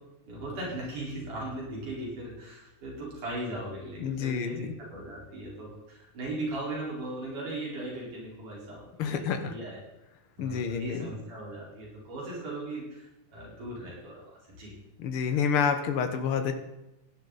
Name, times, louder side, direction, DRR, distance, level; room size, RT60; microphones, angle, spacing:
voice 1, 0.3-9.8 10.4-14.2 14.5-14.7, right 1 dB, 70° right, -5 dB, 6.1 m, -38 dB
voice 2, 4.0-4.7 9.0-9.5 10.4-11.1 15.0-16.5, left 6 dB, 60° left, 7 dB, 1.5 m, -28 dB
17.0 x 11.5 x 4.1 m, 0.95 s
omnidirectional pair, 3.8 m